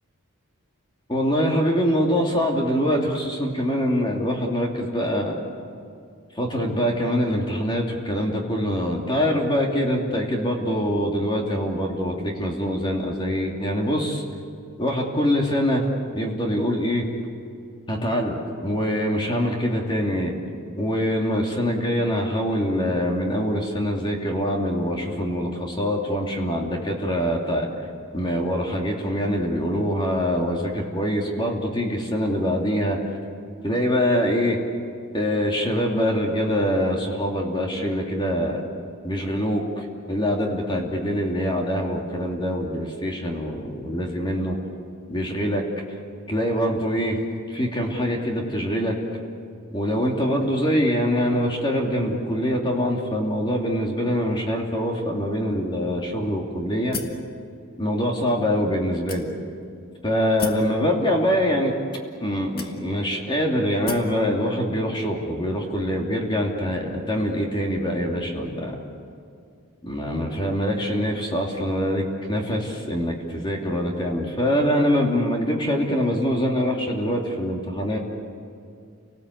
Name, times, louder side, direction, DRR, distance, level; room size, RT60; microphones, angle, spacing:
voice 1, 1.1-5.4 6.3-14.2 14.8-15.8 16.1-17.0 17.9-20.4 20.8-27.7 28.1-33.0 33.6-34.6 35.1-38.6 39.0-44.6 45.1-45.6 46.3-47.2 47.5-49.0 49.7-57.0 57.7-59.3 60.0-61.7 62.2-68.8 69.8-78.0, equal, 20° left, 0 dB, 2.9 m, -24 dB
sound 1, 56.9-57.3 58.0-58.1 59.1-59.6 60.4-60.7 61.7-61.8 62.6-63.1 63.9-64.2, left 4 dB, 45° left, 1.7 m, -34 dB
29.5 x 19.5 x 8.3 m, 2.3 s
head